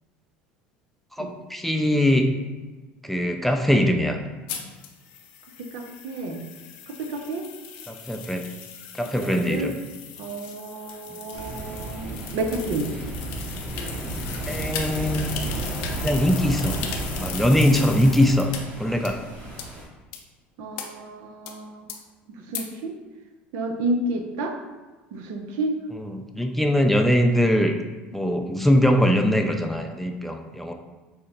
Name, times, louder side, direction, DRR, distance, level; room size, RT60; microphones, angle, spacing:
voice 1, 1.2-2.3 3.0-4.2 7.9-8.4 9.0-9.7 14.5-15.3 16.0-16.8 17.2-18.5 18.8-19.2 26.0-27.7 28.1-30.7, equal, 5° left, 3 dB, 0.3 m, -21 dB
sound 1, 4.5-18.6 19.0-19.1 19.6-19.7 20.1-20.2 20.8-20.9 21.5-21.6 21.9-22.0 22.5-22.6, left 7 dB, 70° left, 0.5 m, -37 dB
voice 2, 5.7-6.4 6.9-7.4 9.2-9.8 10.2-12.9 20.6-21.9 22.5-23.0 23.5-24.5 25.1-25.7, right 2 dB, 65° right, 4 dB, 0.5 m, -30 dB
sound 2, 11.3-19.8, right 2 dB, 35° right, 1.4 m, -33 dB
4.8 x 2.0 x 2.8 m, 1.2 s
hypercardioid pair, 75°, 6 cm